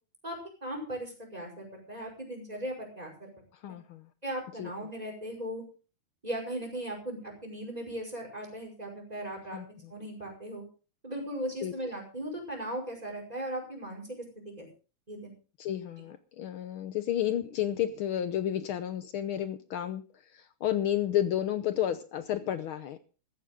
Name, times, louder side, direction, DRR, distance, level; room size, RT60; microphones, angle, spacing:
voice 1, 0.6-3.3 3.7-3.8 4.2-5.6 6.2-9.6 9.9-10.7 11.0-14.2 14.6-14.7 15.1-15.4, right 1 dB, 10° right, 1 dB, 5.4 m, -38 dB
voice 2, 3.6-4.0 4.6-4.7 9.5-9.9 11.6-11.7 15.6-20.0 20.6-23.0, left 11 dB, 90° left, 11 dB, 1.1 m, -31 dB
15.5 x 14.5 x 3.7 m, 0.36 s
omnidirectional pair, 3.5 m